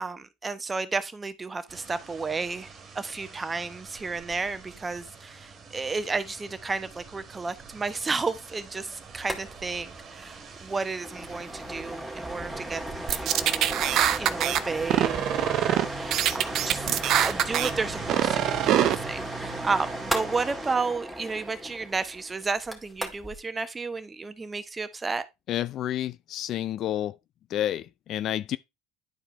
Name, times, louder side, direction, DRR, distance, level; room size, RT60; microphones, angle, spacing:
voice 1, 0.0-13.8 14.2-16.9 17.2-25.3, right 4 dB, 20° right, 0.9 m, -32 dB
sound 1, 1.7-20.7, right 5 dB, 40° right, 1.8 m, -43 dB
sound 2, 9.2-9.4 9.7-9.8 10.1-10.3 10.7-23.4, right 1 dB, ahead, 2.1 m, -36 dB
sound 3, 13.1-14.6 14.9-15.8 16.1-17.7 18.1-18.9, right 11 dB, 55° right, 0.6 m, -23 dB
voice 2, 25.5-27.1 27.5-28.6, left 12 dB, 50° left, 0.4 m, -30 dB
10.5 x 4.5 x 3.3 m
hypercardioid pair, 80°, 0 cm